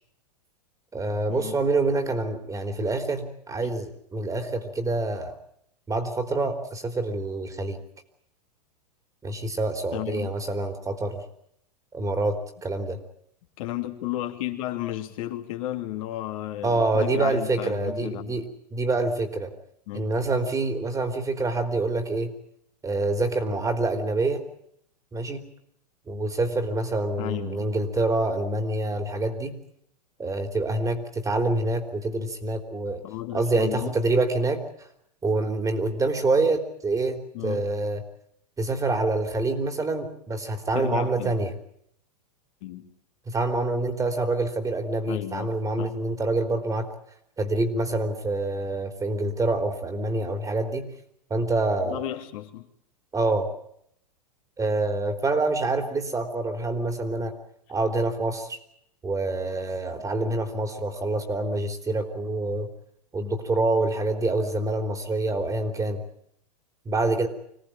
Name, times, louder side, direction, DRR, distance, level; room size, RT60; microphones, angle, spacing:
voice 1, 0.9-5.3 5.9-7.8 9.2-11.2 11.9-13.0 16.6-19.5 19.9-22.3 22.8-24.4 25.1-25.5 26.1-29.6 30.2-33.0 33.3-34.6 35.2-38.0 38.6-41.5 43.3-46.9 47.4-50.9 51.3-52.0 53.1-53.5 54.6-57.4 57.7-58.6 59.0-62.7 63.1-66.0 66.9-67.3, right 2 dB, 15° right, 7 dB, 3.7 m, -26 dB
voice 2, 9.9-10.3 13.6-18.4 19.9-20.1 27.2-27.7 33.0-33.9 37.3-37.6 40.7-41.3 42.6-42.8 45.1-45.5 45.8-45.9 51.8-52.7, left 14 dB, 55° left, 5 dB, 3.1 m, -33 dB
26.0 x 18.0 x 8.9 m, 0.71 s
hypercardioid pair, 100°, 21 cm